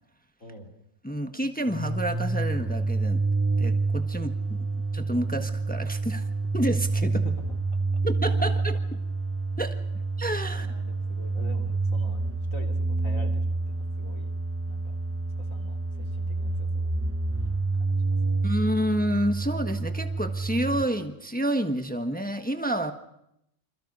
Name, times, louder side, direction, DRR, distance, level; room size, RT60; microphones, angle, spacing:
voice 1, 0.4-0.7 4.1-4.7 7.1-7.3 10.5-14.3 14.7-14.9 15.4-16.9 17.7-18.4, equal, 90° left, 2 dB, 3.5 m, -46 dB
voice 2, 1.0-3.2 3.6-4.3 4.9-6.2 6.5-7.1 8.0-8.8 9.6-9.7 10.2-10.7 18.4-22.9, right 1 dB, 5° left, 6 dB, 1.3 m, -29 dB
sound 1, 1.7-20.8, right 3 dB, 15° right, 0.7 m, -28 dB
27.5 x 27.0 x 5.5 m, 0.81 s
omnidirectional pair, 1.4 m